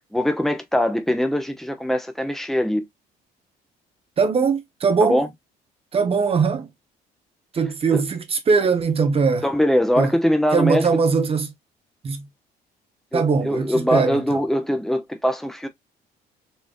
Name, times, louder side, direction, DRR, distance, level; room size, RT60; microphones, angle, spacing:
voice 1, 0.1-2.8 5.0-5.3 7.9-8.0 9.4-10.9 13.1-15.7, equal, ahead, 1.0 m, -22 dB
voice 2, 4.2-5.2 5.9-6.7 7.5-9.4 10.0-10.1 10.5-11.5 12.0-12.3 13.1-14.4, right 5 dB, 35° right, 1.0 m, -21 dB
4.4 x 3.3 x 2.3 m
cardioid pair, 110°, 17 cm